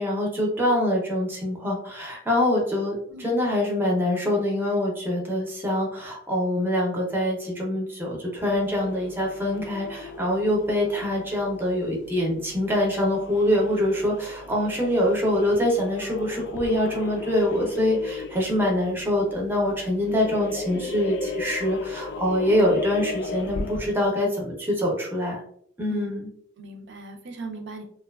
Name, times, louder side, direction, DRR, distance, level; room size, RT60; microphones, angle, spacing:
voice 1, 0.0-25.4 25.8-26.3, left 1 dB, 10° right, -2 dB, 0.5 m, -24 dB
sound 1, 8.4-24.1, left 3 dB, 60° left, 0.3 m, -37 dB
voice 2, 26.6-27.8, right 3 dB, 60° right, 4 dB, 0.5 m, -38 dB
2.6 x 2.2 x 2.2 m, 0.66 s
head